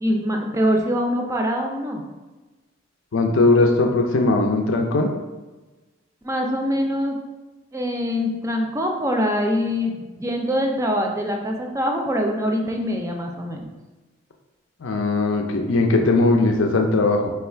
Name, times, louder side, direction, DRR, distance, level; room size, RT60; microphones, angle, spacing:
voice 1, 0.0-2.0 6.2-7.2 7.7-13.7, equal, 15° right, 2 dB, 0.4 m, -24 dB
voice 2, 3.1-5.1 14.8-17.3, left 2 dB, 75° left, 3 dB, 0.5 m, -19 dB
3.2 x 2.4 x 4.3 m, 1.2 s
head